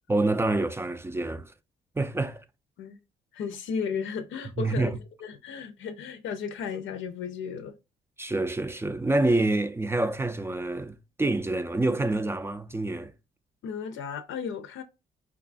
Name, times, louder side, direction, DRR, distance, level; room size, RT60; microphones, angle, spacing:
voice 1, 0.1-1.5 2.0-2.4 4.6-5.0 8.2-13.1, right 2 dB, 10° right, 0.3 m, -27 dB
voice 2, 3.3-4.9 5.2-7.7 13.6-14.8, left 6 dB, 75° left, 0.5 m, -34 dB
5.2 x 2.3 x 2.4 m
cardioid pair, 90°, 20 cm